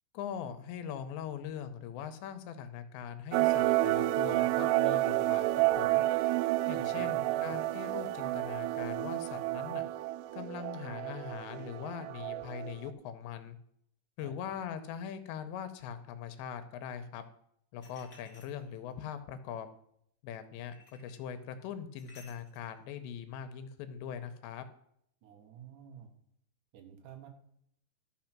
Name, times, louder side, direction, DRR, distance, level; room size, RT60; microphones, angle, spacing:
voice 1, 0.1-6.0 6.7-9.8 10.3-13.6 14.2-17.2 17.7-19.7 20.2-20.7 21.0-24.7, left 8 dB, 85° left, 10 dB, 3.0 m, -41 dB
sound 1, 3.3-12.9, right 17 dB, 85° right, 2.4 m, -30 dB
voice 2, 6.9-7.6 14.2-14.4 25.2-26.1 26.7-27.3, right 9 dB, 60° right, 4 dB, 2.4 m, -51 dB
sound 2, 17.8-19.0 20.7-21.2 22.0-22.7, left 3 dB, 65° left, 0.7 m, -58 dB
13.0 x 5.6 x 5.9 m, 0.70 s
omnidirectional pair, 5.0 m